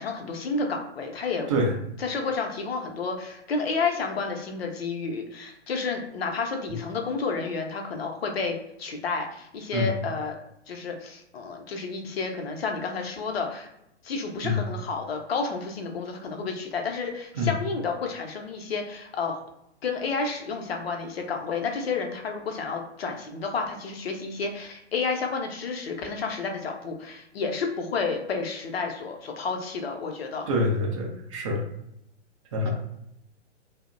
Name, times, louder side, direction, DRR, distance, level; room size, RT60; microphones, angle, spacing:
voice 1, 0.0-1.5 2.0-10.4 10.7-13.7 14.0-19.4 19.8-30.5 32.6-32.7, left 4 dB, 60° left, 3 dB, 0.6 m, -30 dB
voice 2, 30.5-31.6 32.5-32.7, left 1 dB, 30° right, 1 dB, 0.5 m, -25 dB
2.7 x 2.0 x 2.4 m, 0.81 s
figure-of-eight pair, 115°, 35 cm